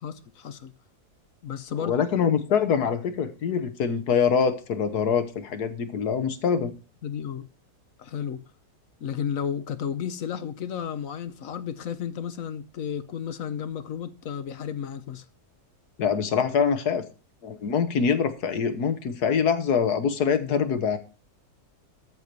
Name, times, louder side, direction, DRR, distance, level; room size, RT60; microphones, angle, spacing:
voice 1, 0.0-0.7 1.4-2.1 7.0-7.5 8.0-8.4 9.0-15.2, left 8 dB, 60° left, 1.3 m, -33 dB
voice 2, 1.8-6.7 16.0-17.0 17.4-21.0, left 6 dB, 85° left, 1.8 m, -24 dB
13.5 x 4.5 x 6.8 m
omnidirectional pair, 1.6 m